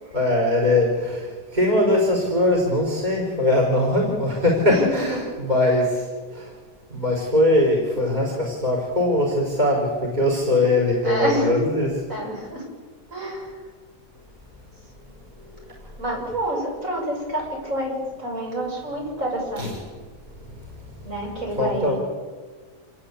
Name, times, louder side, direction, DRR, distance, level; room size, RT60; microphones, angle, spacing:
voice 1, 0.1-6.1 6.3-6.5 6.9-11.9 19.6-19.7 21.6-22.0, left 1 dB, 25° right, -1 dB, 5.3 m, -21 dB
voice 2, 4.7-5.3 11.0-11.6 12.1-12.6 13.1-13.5 16.0-19.7 21.0-22.0, equal, 50° right, -1 dB, 8.3 m, -28 dB
28.5 x 21.5 x 8.5 m, 1.4 s
omnidirectional pair, 1.8 m